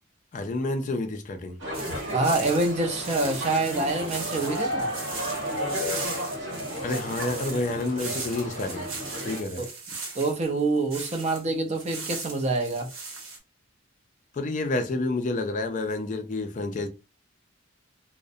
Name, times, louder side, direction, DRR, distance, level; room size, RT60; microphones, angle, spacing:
voice 1, 0.3-1.6 6.8-8.9 9.2-9.6 14.3-16.9, left 2 dB, 40° left, 0.4 m, -29 dB
sound 1, 1.6-9.4, equal, 60° right, 1.0 m, -33 dB
sound 2, 1.7-11.4 11.7-13.4, right 4 dB, 85° right, 0.9 m, -38 dB
voice 2, 2.1-4.9 9.6-9.7 10.1-12.9, right 2 dB, 35° right, 0.5 m, -26 dB
2.4 x 2.0 x 2.6 m
head